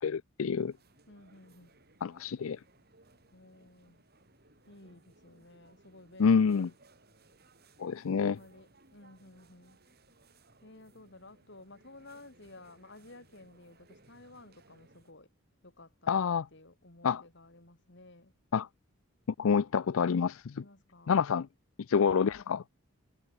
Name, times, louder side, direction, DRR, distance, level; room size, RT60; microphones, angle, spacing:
voice 1, 0.0-0.7 2.0-2.6 6.2-6.7 7.8-8.4 16.1-16.4 17.0-17.2 18.5-18.7 19.4-20.6 21.1-21.5 21.9-22.6, left 6 dB, 70° left, 0.4 m, -27 dB
sound 1, 0.6-15.1, right 2 dB, 45° right, 6.4 m, -63 dB
voice 2, 1.1-1.8 3.3-4.1 4.7-6.6 8.2-9.8 10.6-15.3 15.6-18.4 20.6-21.2 22.3-22.6, left 2 dB, 55° left, 3.8 m, -54 dB
head